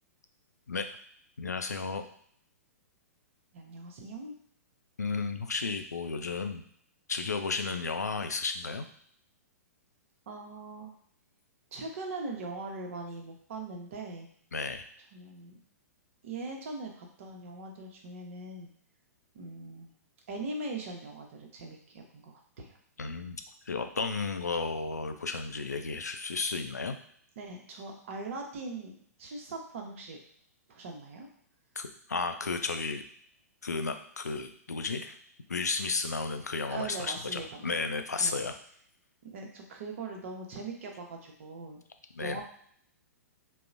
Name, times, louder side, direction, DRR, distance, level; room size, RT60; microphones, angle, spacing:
voice 1, 1.4-2.0 5.0-6.6 7.1-8.9 14.5-14.8 23.0-27.0 31.8-33.0 33.6-35.2 35.5-38.6 42.2-42.4, left 4 dB, 80° left, 7 dB, 0.3 m, -33 dB
voice 2, 3.5-4.3 10.3-10.9 11.7-14.3 15.1-15.6 16.2-18.7 19.3-19.9 20.3-22.8 27.4-30.2 30.7-31.3 36.7-37.9 38.2-38.5 39.2-41.8 42.2-42.4, right 3 dB, 50° right, 2 dB, 0.7 m, -41 dB
3.8 x 2.0 x 2.5 m, 0.64 s
figure-of-eight pair, 110°, 9 cm